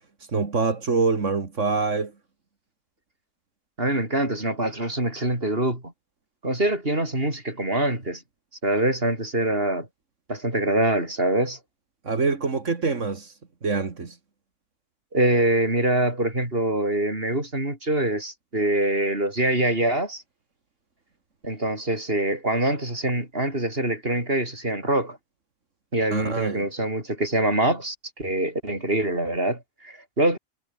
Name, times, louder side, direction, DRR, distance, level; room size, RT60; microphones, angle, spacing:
voice 1, 0.3-2.1 12.0-13.3 13.6-14.1 26.1-26.7, right 4 dB, 65° right, 2.5 m, -25 dB
voice 2, 3.8-5.9 6.4-8.2 8.6-9.9 10.3-11.6 15.1-20.2 21.4-25.2 25.9-30.4, right 1 dB, 45° right, 6.6 m, -24 dB
omnidirectional pair, 1.4 m